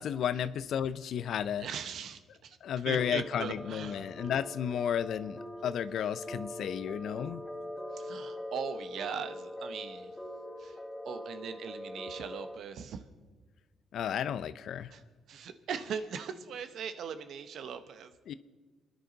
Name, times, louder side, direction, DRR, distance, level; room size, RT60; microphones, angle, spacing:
voice 1, 0.0-1.7 2.6-7.4 13.9-14.9 18.3-18.4, left 9 dB, 70° left, 15 dB, 0.6 m, -33 dB
voice 2, 1.6-2.6 2.9-4.1 7.9-10.1 10.6-10.7 11.0-13.0 14.9-15.0 15.3-18.1, right 7 dB, 70° right, 10 dB, 1.0 m, -40 dB
sound 1, 3.0-12.6, left 1 dB, 15° left, 1.3 m, -43 dB
29.0 x 10.5 x 4.0 m, 1.4 s
cardioid pair, 90°, 0 cm